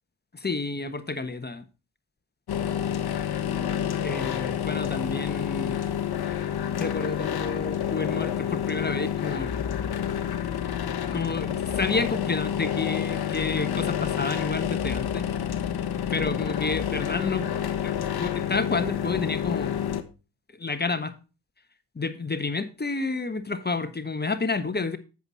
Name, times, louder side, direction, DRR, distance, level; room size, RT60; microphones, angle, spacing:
voice 1, 0.3-1.6 4.0-5.8 6.7-9.5 11.1-15.3 16.1-17.5 17.8-19.7 20.6-21.1 21.9-25.0, left 3 dB, 20° left, 1.3 m, -30 dB
sound 1, 2.5-20.0, left 9 dB, 55° left, 1.3 m, -29 dB
8.1 x 8.0 x 4.0 m
hypercardioid pair, 50°, 44 cm